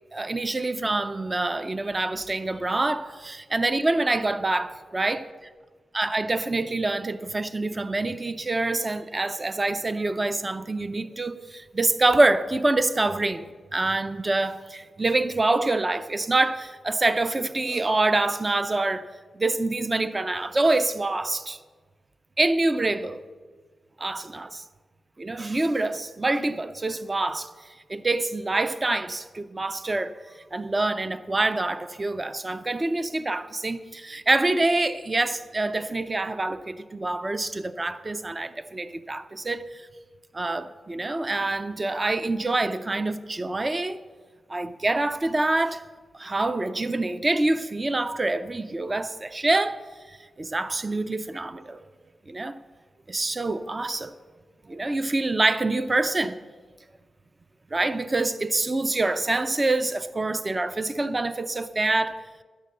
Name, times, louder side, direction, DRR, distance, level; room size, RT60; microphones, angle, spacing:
voice 1, 0.1-5.2 5.9-13.4 13.7-19.1 19.3-21.6 22.4-23.2 24.0-24.6 25.2-27.5 27.9-30.1 30.5-39.9 40.3-44.0 44.5-45.8 46.1-49.8 50.1-51.8 52.3-52.6 53.1-54.1 54.7-56.4 57.7-62.2, right 2 dB, 25° right, 0.5 m, -26 dB
11.5 x 8.8 x 6.7 m
wide cardioid pair, 90°, 0 cm